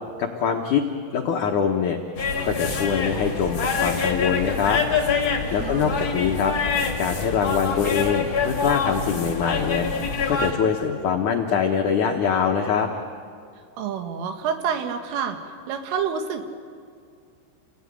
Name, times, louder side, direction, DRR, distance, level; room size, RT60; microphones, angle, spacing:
voice 1, 0.2-0.8 1.1-2.0 2.4-4.8 5.5-6.5 7.0-12.9, left 7 dB, 85° left, 2 dB, 1.7 m, -24 dB
sound 1, 2.2-10.5, left 5 dB, 35° left, 2.2 m, -25 dB
voice 2, 5.5-6.0 13.8-15.4 15.7-16.4, right 7 dB, 85° right, 6 dB, 4.3 m, -28 dB
29.0 x 18.5 x 9.8 m, 2.2 s
omnidirectional pair, 5.6 m